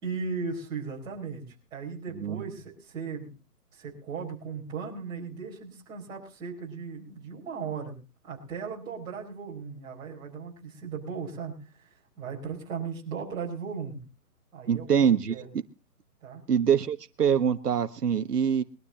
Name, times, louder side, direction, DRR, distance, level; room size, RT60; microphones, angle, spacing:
voice 1, 0.0-3.3 3.7-8.0 8.2-14.0 14.5-15.5 16.2-16.4, right 5 dB, 10° right, -4 dB, 4.4 m, -37 dB
voice 2, 14.7-15.6 16.5-18.6, right 7 dB, 80° right, 9 dB, 1.4 m, -24 dB
22.5 x 13.0 x 2.9 m, 0.32 s
hypercardioid pair, 175°, 47 cm